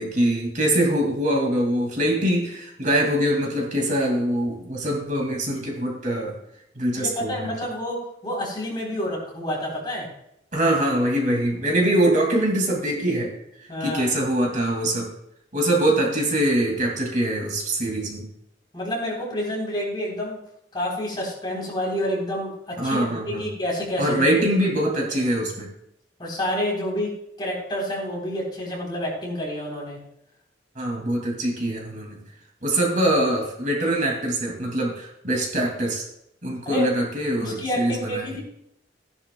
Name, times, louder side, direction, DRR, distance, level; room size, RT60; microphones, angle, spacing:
voice 1, 0.0-6.4 6.8-7.5 10.5-13.3 13.8-15.1 15.5-18.3 22.8-23.4 24.0-25.7 30.8-32.2 32.6-36.0 36.4-38.3, right 1 dB, 45° right, 0 dB, 2.4 m, -23 dB
voice 2, 6.9-8.0 8.2-10.1 13.7-14.1 18.7-20.4 20.7-23.1 23.3-24.4 26.2-30.0 36.7-36.9 37.4-38.4, left 1 dB, 25° left, -2 dB, 3.6 m, -28 dB
15.5 x 10.5 x 2.3 m, 0.78 s
head